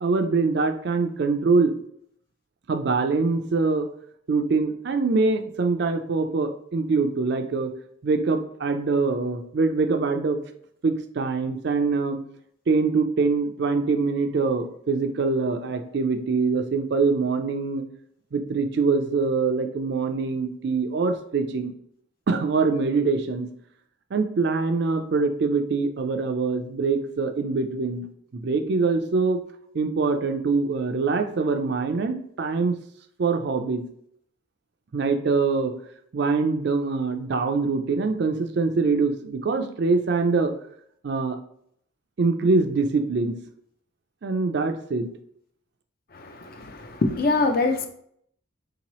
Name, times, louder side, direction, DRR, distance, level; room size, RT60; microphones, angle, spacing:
voice 1, 0.0-1.7 2.7-3.9 4.3-7.7 8.0-10.4 10.8-12.2 12.7-17.8 18.3-21.7 22.3-23.5 24.1-28.0 28.3-29.4 29.7-32.8 33.2-33.8 34.9-35.7 36.1-40.5 41.0-41.4 42.2-43.4 44.2-45.1, right 4 dB, 55° right, 0.4 m, -24 dB
voice 2, 46.1-47.9, left 3 dB, 45° left, 0.5 m, -24 dB
4.4 x 2.9 x 3.0 m
head